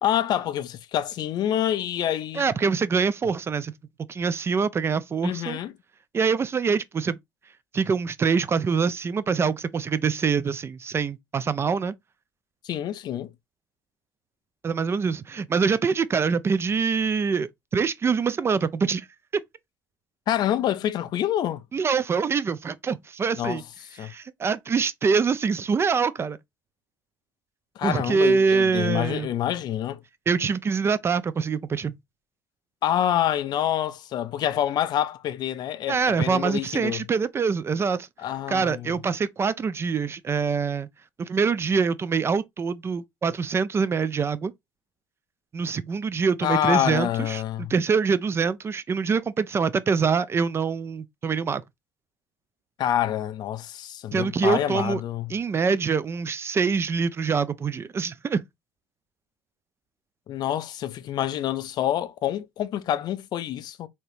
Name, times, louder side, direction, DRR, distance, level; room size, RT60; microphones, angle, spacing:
voice 1, 0.0-2.5 5.2-5.7 12.6-13.3 20.3-21.6 23.4-23.6 24.0-24.1 27.8-30.0 32.8-37.0 38.2-39.0 46.4-47.7 52.8-55.3 60.3-63.9, left 11 dB, 55° left, 0.5 m, -27 dB
voice 2, 2.4-3.7 4.1-5.6 6.1-7.2 7.7-11.9 14.6-19.1 21.7-23.6 24.0-26.4 27.8-29.3 30.3-31.9 35.9-38.1 38.5-40.9 41.2-44.5 45.5-51.6 54.1-55.0 55.3-58.4, right 5 dB, 30° right, 0.3 m, -24 dB
3.2 x 2.9 x 2.6 m
supercardioid pair, 75°, 9 cm